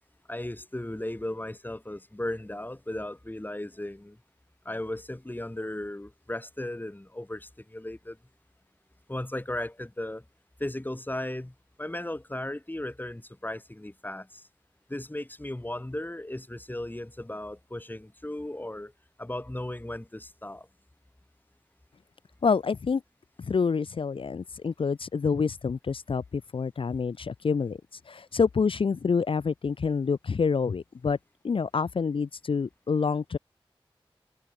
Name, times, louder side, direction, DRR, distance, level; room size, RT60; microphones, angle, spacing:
voice 1, 0.3-4.2 4.7-8.2 9.1-10.2 10.6-14.4 14.9-18.9 19.2-20.7, left 1 dB, 20° left, 2.2 m, -36 dB
voice 2, 22.4-23.0 23.4-31.2 31.4-33.4, left 5 dB, 70° left, 0.5 m, -27 dB
cardioid pair, 45°, 9 cm